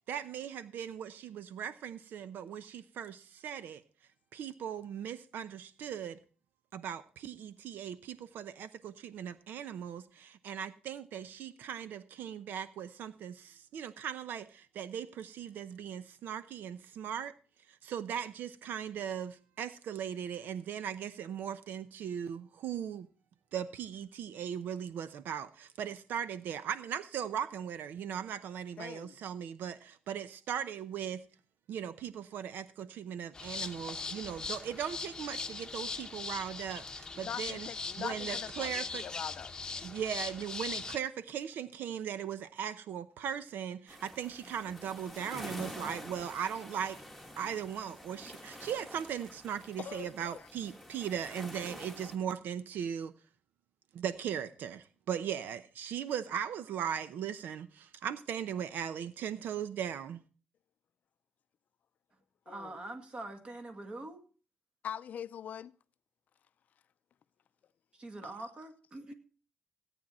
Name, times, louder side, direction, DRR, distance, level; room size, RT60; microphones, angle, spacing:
voice 1, 0.1-3.8 4.3-6.2 6.7-17.3 17.8-23.1 23.5-31.2 31.7-37.7 38.0-39.0 39.8-47.0 47.4-53.1 53.9-60.2, right 8 dB, 75° right, 0.8 m, -38 dB
voice 2, 28.8-29.2 37.2-39.5 49.8-50.5 62.5-62.7 64.8-65.7, left 8 dB, 50° left, 0.5 m, -42 dB
sound 1, 33.3-41.0, left 4 dB, 20° left, 1.0 m, -40 dB
sound 2, 43.9-52.2, left 1 dB, ahead, 1.7 m, -48 dB
voice 3, 62.5-64.2 67.9-69.1, right 2 dB, 30° right, 2.2 m, -44 dB
17.0 x 9.2 x 4.3 m
cardioid pair, 140°, 3 cm